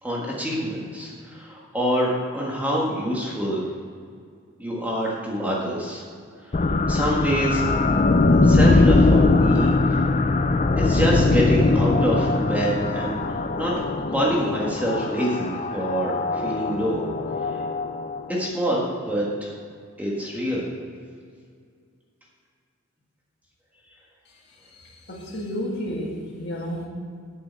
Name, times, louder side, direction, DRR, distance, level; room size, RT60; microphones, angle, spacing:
voice 1, 0.0-3.6 4.6-6.0 6.4-7.6 8.4-10.0 10.8-13.7 14.1-17.0 17.4-17.6 18.3-19.5 20.0-20.6, equal, 5° right, -4 dB, 1.6 m, -26 dB
sound 1, 6.5-18.5, left 3 dB, 30° left, 0.4 m, -21 dB
voice 2, 25.1-26.9, equal, 50° left, -2 dB, 2.0 m, -31 dB
8.5 x 6.8 x 7.6 m, 2.1 s
head